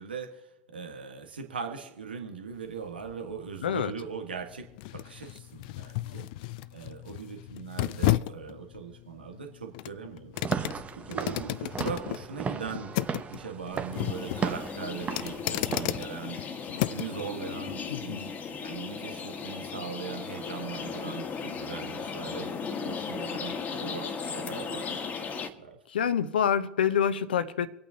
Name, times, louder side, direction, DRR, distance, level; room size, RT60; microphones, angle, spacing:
voice 1, 0.0-4.7 4.9-6.3 6.7-10.3 10.9-13.1 13.3-16.5 16.8-18.3 18.6-22.5 22.8-25.0 25.4-25.8, right 6 dB, 85° right, 4 dB, 1.5 m, -40 dB
sound 1, 2.5-17.2 17.7-17.8, left 17 dB, 60° left, 0.4 m, -34 dB
voice 2, 3.6-3.9 17.9-18.2 25.9-27.7, left 8 dB, 80° left, 13 dB, 0.8 m, -27 dB
Walk footsteps / Siren, 10.3-16.0, right 6 dB, 25° right, 1.1 m, -35 dB
sound 2, 13.9-25.5, left 6 dB, 30° left, 1.4 m, -36 dB
26.0 x 8.8 x 2.8 m, 0.98 s
hypercardioid pair, 85°, 5 cm